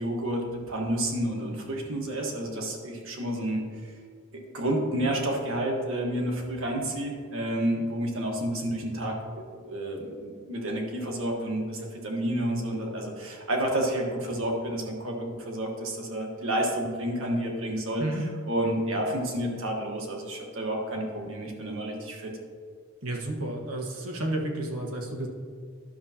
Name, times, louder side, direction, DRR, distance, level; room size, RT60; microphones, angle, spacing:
voice 1, 0.0-3.9 4.3-9.2 9.5-18.0 18.5-22.3, right 1 dB, 65° right, 0 dB, 1.5 m, -30 dB
voice 2, 23.0-25.3, right 1 dB, 85° right, 1 dB, 1.3 m, -31 dB
11.5 x 6.8 x 2.9 m, 2.1 s
head